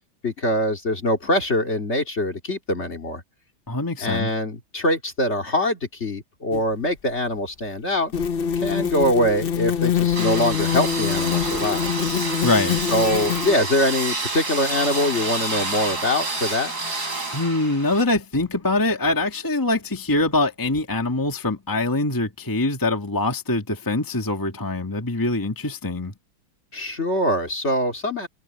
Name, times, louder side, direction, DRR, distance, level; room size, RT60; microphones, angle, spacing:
voice 1, 0.2-3.2 4.0-8.1 8.6-11.9 12.2-12.3 12.9-16.7 26.7-28.3, left 1 dB, 35° left, 2.6 m, -23 dB
voice 2, 3.7-4.3 12.4-12.8 17.3-26.1, left 2 dB, 10° left, 1.7 m, -23 dB
sound 1, 6.5-6.6 8.1-13.5, left 8 dB, 90° left, 0.5 m, -24 dB
sound 2, 10.1-18.0, right 3 dB, 50° right, 6.6 m, -29 dB
omnidirectional pair, 2.2 m